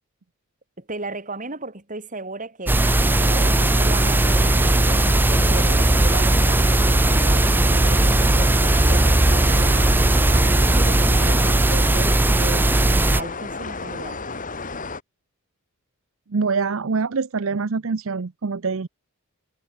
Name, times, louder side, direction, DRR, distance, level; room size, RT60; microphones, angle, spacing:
voice 1, 0.8-2.8 3.2-14.2, right 3 dB, 35° right, 3.8 m, -35 dB
sound 1, 2.7-13.2, right 2 dB, 10° right, 0.3 m, -18 dB
sound 2, 2.8-15.0, left 3 dB, 35° left, 3.4 m, -33 dB
voice 2, 16.3-18.9, right 4 dB, 60° right, 0.6 m, -24 dB
head